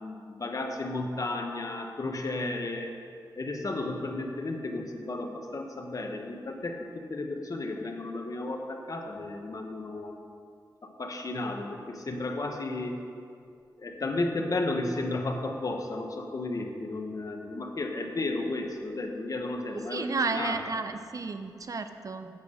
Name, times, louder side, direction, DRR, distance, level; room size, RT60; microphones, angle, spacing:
voice 1, 0.0-3.0 3.4-10.1 10.8-13.0 13.8-20.6, left 2 dB, 50° left, 3 dB, 1.2 m, -33 dB
voice 2, 19.7-22.3, right 4 dB, 50° right, 8 dB, 0.7 m, -32 dB
8.1 x 8.1 x 6.5 m, 2.4 s
cardioid pair, 70°, 8 cm